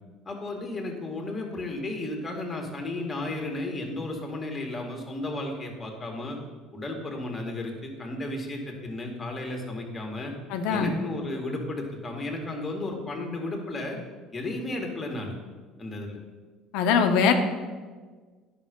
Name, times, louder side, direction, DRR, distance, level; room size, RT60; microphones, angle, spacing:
voice 1, 0.3-6.4 6.7-10.3 10.7-14.0 14.3-15.4 15.8-16.2, left 2 dB, 20° left, 1 dB, 2.0 m, -33 dB
voice 2, 10.5-10.9 16.7-17.3, left 6 dB, 80° left, 6 dB, 0.9 m, -22 dB
10.5 x 5.7 x 5.3 m, 1.4 s
cardioid pair, 110°, 0 cm